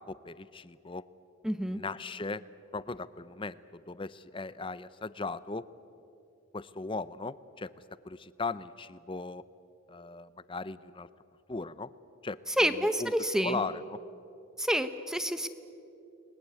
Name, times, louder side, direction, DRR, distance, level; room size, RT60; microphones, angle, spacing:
voice 1, 0.1-1.0 1.7-2.4 2.7-5.7 6.5-7.7 8.0-9.4 9.9-11.1 11.5-11.9 12.2-12.4 13.0-13.1 13.4-14.0, left 3 dB, 25° left, 16 dB, 0.6 m, -38 dB
voice 2, 1.4-1.8 12.5-13.6 14.6-15.5, equal, 5° right, 11 dB, 0.9 m, -28 dB
29.5 x 20.5 x 8.3 m, 2.7 s
head